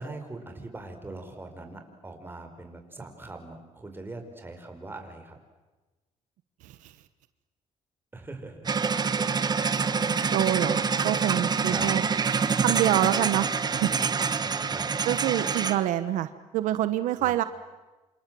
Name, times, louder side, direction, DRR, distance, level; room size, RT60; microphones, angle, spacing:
voice 1, 0.0-5.4 8.1-10.2 11.6-11.9 13.9-14.9 17.2-17.5, right 2 dB, 15° right, 5 dB, 5.5 m, -42 dB
sound 1, 8.7-15.8, right 5 dB, 35° right, 1.4 m, -26 dB
voice 2, 10.3-12.0 12.6-13.9 15.0-17.4, right 13 dB, 85° right, 12 dB, 1.1 m, -26 dB
28.0 x 27.5 x 7.8 m, 1.2 s
cardioid pair, 105°, 13 cm